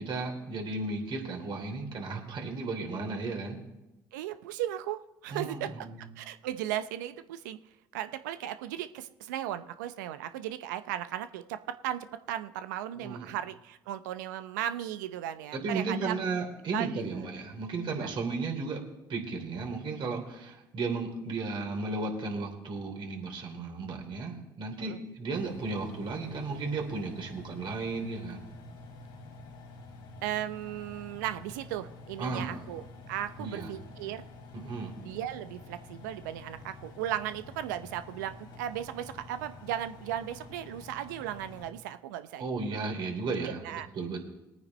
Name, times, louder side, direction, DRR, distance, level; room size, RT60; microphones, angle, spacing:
voice 1, 0.0-3.6 5.3-6.0 12.9-13.3 15.5-18.8 19.1-28.5 32.2-32.7 33.4-33.7 34.5-34.9 42.4-44.3, right 3 dB, 55° right, 2 dB, 3.5 m, -34 dB
voice 2, 4.1-5.9 6.2-7.6 7.9-11.6 11.8-16.1 16.7-16.9 18.0-18.1 24.8-25.0 30.2-32.8 33.1-34.2 35.0-42.4 43.4-43.9, right 12 dB, 85° right, 11 dB, 0.6 m, -36 dB
Engine, 25.3-41.7, left 2 dB, 75° left, 2.6 m, -48 dB
21.5 x 9.4 x 3.2 m, 0.99 s
hypercardioid pair, 55°, 10 cm